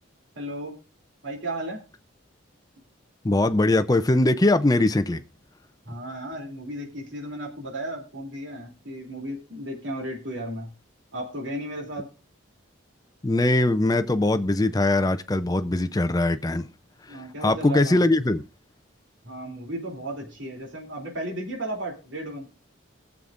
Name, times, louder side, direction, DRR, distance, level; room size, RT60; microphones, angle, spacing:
voice 1, 0.3-0.8 1.2-1.8 5.8-10.7 11.1-12.1 17.1-18.1 19.2-22.5, right 1 dB, 65° right, 2.9 m, -34 dB
voice 2, 3.2-5.2 13.2-16.7 17.1-18.4, left 2 dB, 20° left, 0.5 m, -21 dB
21.5 x 7.2 x 2.5 m
head